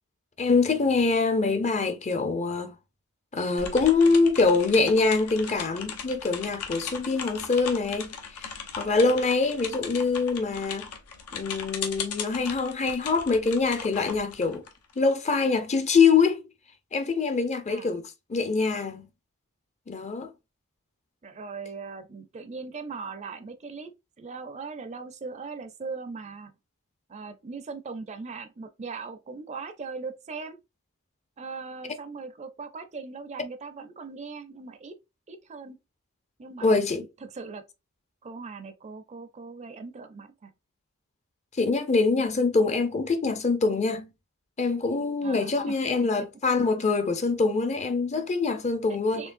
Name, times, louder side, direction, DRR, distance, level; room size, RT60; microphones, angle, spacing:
voice 1, 0.4-2.8 3.3-8.5 8.8-10.9 11.3-14.6 15.0-16.4 16.9-19.1 19.9-20.3 36.6-37.0 41.6-44.1 44.6-49.2, left 4 dB, 30° left, 0.5 m, -24 dB
sound 1, 3.6-15.1, left 6 dB, 90° left, 0.9 m, -38 dB
voice 2, 21.2-23.9 24.2-26.5 27.1-30.6 31.4-35.0 35.3-35.8 36.4-36.8 37.2-37.6 38.2-40.5 45.2-45.7 46.0-46.1 49.1-49.3, right 4 dB, 30° right, 0.5 m, -39 dB
4.5 x 3.2 x 2.5 m
head